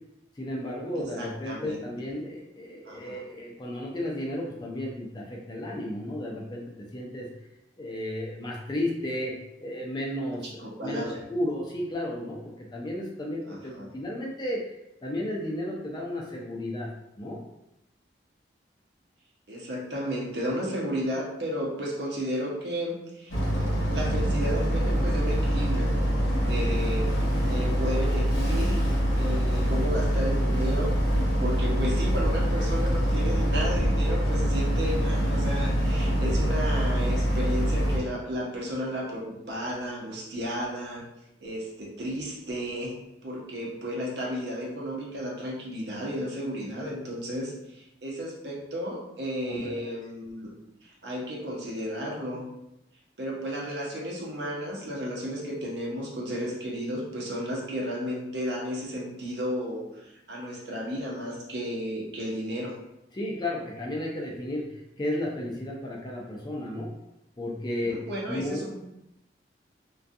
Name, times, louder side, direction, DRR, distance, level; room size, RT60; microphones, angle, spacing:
voice 1, 0.4-7.3 7.8-14.6 15.0-16.9 17.2-17.4 26.7-26.8 49.5-49.7 63.1-64.7 65.0-66.9 67.4-68.0 68.3-68.6, left 1 dB, 25° left, -2 dB, 0.4 m, -33 dB
voice 2, 0.9-1.8 2.8-3.2 10.6-11.1 13.5-13.9 19.5-23.3 23.9-25.9 26.4-27.1 27.5-28.8 29.2-41.0 41.4-50.5 50.8-52.4 53.2-62.7 67.8-68.8, equal, 70° right, -3 dB, 0.7 m, -33 dB
Boat Water vehicle, 23.3-38.0, equal, 90° left, 0.8 m, -25 dB
2.5 x 2.3 x 2.5 m, 0.86 s
head